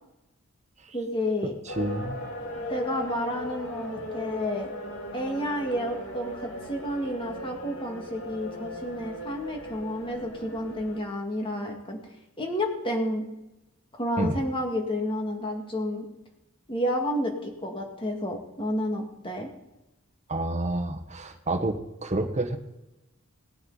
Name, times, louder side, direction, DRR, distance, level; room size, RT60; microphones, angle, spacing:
voice 1, 0.9-1.5 2.7-4.7 5.1-12.0 12.4-13.2 13.9-16.1 16.7-19.5, equal, 25° left, 2 dB, 2.0 m, -30 dB
sound 1, 1.7-11.0, left 1 dB, 65° left, 2.1 m, -38 dB
voice 2, 1.7-2.2 14.2-14.4 20.3-22.6, right 1 dB, 35° right, 3 dB, 1.2 m, -29 dB
19.0 x 8.8 x 4.0 m, 0.94 s
head